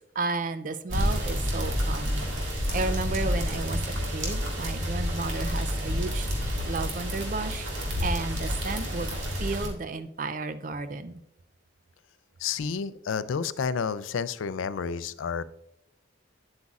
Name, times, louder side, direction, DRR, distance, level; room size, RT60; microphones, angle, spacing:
voice 1, 0.2-2.3 2.7-3.8 4.1-6.3 6.6-7.7 8.0-11.2, right 3 dB, 40° right, 11 dB, 0.4 m, -33 dB
sound 1, 0.9-9.7, equal, 85° right, 2.0 m, -29 dB
voice 2, 12.4-15.4, left 6 dB, 90° left, 15 dB, 0.4 m, -30 dB
9.6 x 8.0 x 2.4 m, 0.77 s
head